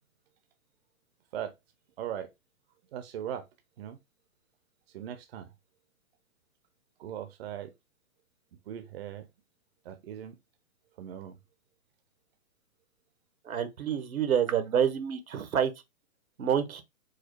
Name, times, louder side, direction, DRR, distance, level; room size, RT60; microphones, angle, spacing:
voice 1, 2.0-2.3 2.9-3.5 3.8-4.0 4.9-5.5 7.0-7.7 8.7-9.3 9.8-10.4 11.0-11.4, right 10 dB, 45° right, 0.7 m, -39 dB
voice 2, 13.5-15.7 16.4-16.8, right 8 dB, 80° right, 1.1 m, -27 dB
4.8 x 2.0 x 4.5 m
hypercardioid pair, 140°, 42 cm